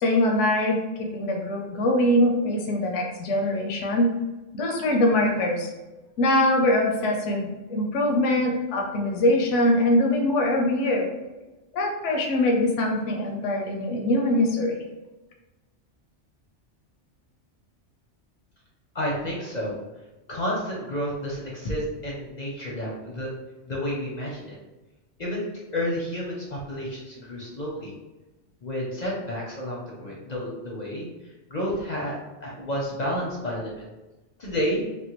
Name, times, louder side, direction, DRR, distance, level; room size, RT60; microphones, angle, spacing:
voice 1, 0.0-4.1 4.5-5.7 6.2-11.1 11.7-14.8, left 1 dB, 85° left, 2 dB, 0.9 m, -23 dB
voice 2, 18.9-19.8 20.3-23.3 23.7-24.6 25.2-25.5 25.7-27.9 28.6-31.1 31.5-33.8 34.4-34.9, equal, 45° left, -3 dB, 0.6 m, -30 dB
3.5 x 2.2 x 2.9 m, 1.1 s
omnidirectional pair, 1.2 m